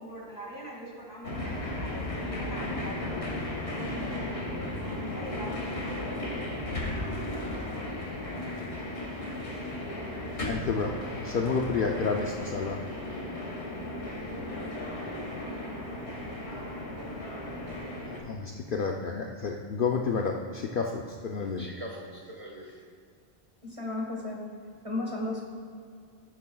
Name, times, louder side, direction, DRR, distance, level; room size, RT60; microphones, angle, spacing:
voice 1, 0.0-4.3 4.6-7.9 8.2-8.8 9.3-9.4, right 1 dB, 15° left, -3 dB, 2.1 m, -45 dB
sound 1, 1.2-18.2, left 1 dB, 80° left, 2.0 m, -35 dB
voice 2, 10.4-12.8 18.2-21.7, left 5 dB, 60° left, 1 dB, 0.7 m, -30 dB
voice 3, 21.6-22.7 23.6-24.4 24.8-25.4, left 2 dB, 30° right, -2 dB, 1.4 m, -35 dB
16.0 x 8.4 x 2.3 m, 2.3 s
omnidirectional pair, 1.1 m